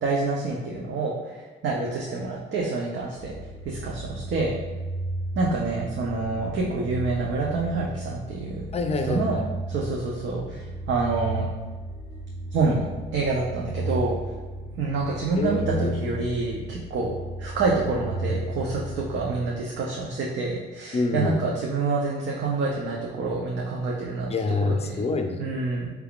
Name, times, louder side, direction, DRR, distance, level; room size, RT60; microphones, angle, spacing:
voice 1, 0.0-3.3 3.6-4.5 5.3-8.7 9.0-11.5 12.5-14.2 14.7-17.1 17.4-24.3 24.6-25.0 25.4-25.9, right 3 dB, 65° right, -2 dB, 0.7 m, -27 dB
sound 1, 3.1-20.0, right 1 dB, 25° right, 0.7 m, -34 dB
voice 2, 8.7-9.3 15.4-16.1 20.9-21.4 24.3-25.5, left 3 dB, 30° left, 5 dB, 0.5 m, -26 dB
4.6 x 3.5 x 2.4 m, 1.4 s
cardioid pair, 90°, 20 cm